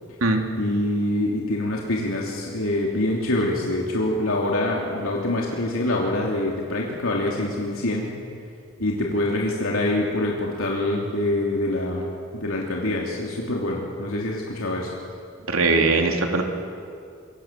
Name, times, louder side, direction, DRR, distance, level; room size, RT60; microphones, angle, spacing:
voice 1, 0.6-8.1 8.8-12.1 12.3-14.9, left 1 dB, 75° left, -2 dB, 3.1 m, -25 dB
voice 2, 15.5-16.4, right 3 dB, 70° right, 3 dB, 3.0 m, -20 dB
27.0 x 24.0 x 7.5 m, 2.3 s
head